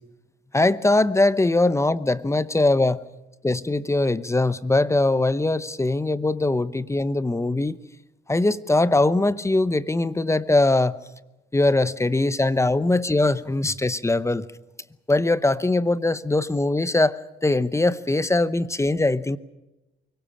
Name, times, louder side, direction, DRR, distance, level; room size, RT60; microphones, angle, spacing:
voice 1, 0.5-3.0 3.4-7.8 8.3-11.0 11.5-14.4 15.1-19.4, left 2 dB, 15° left, 16 dB, 0.8 m, -21 dB
24.5 x 17.0 x 8.7 m, 1.0 s
cardioid pair, 90°, 20 cm